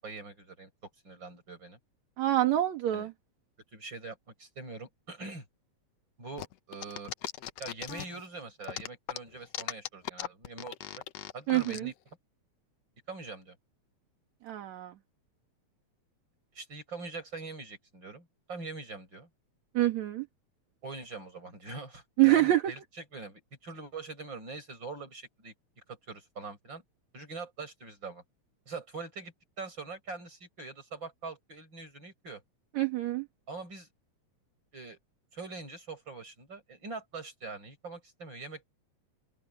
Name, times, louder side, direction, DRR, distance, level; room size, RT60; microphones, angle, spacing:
voice 1, 0.0-0.7 1.0-1.8 2.9-3.1 3.7-5.4 6.2-7.1 7.6-11.0 11.3-11.9 13.1-13.6 16.5-19.3 20.8-25.5 25.9-26.8 27.1-28.2 28.7-32.4 33.5-33.9 34.7-35.0 35.3-38.7, right 3 dB, 35° right, 8.4 m, -43 dB
voice 2, 2.2-3.1 11.5-11.9 14.4-14.9 19.7-20.3 22.2-22.7 32.8-33.3, right 14 dB, 70° right, 3.0 m, -26 dB
sound 1, 6.4-8.3 8.6-11.8, left 13 dB, 70° left, 1.9 m, -38 dB
open air
omnidirectional pair, 3.3 m